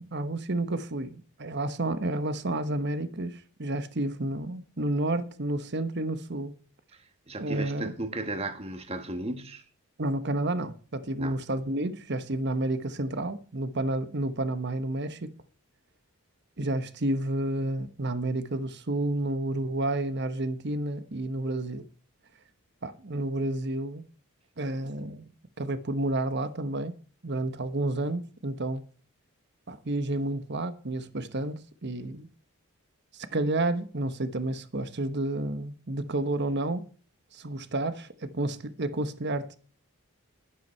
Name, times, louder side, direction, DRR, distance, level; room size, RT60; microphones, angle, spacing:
voice 1, 0.0-6.6 7.4-7.9 10.0-15.3 16.6-21.9 22.8-24.0 24.6-25.2 25.6-26.9 27.2-28.8 29.7-32.3 33.1-36.9 37.3-39.6, right 2 dB, 50° right, 1.1 m, -30 dB
voice 2, 6.9-9.6 11.2-11.5, right 2 dB, 25° right, 1.5 m, -35 dB
11.0 x 11.0 x 4.5 m
head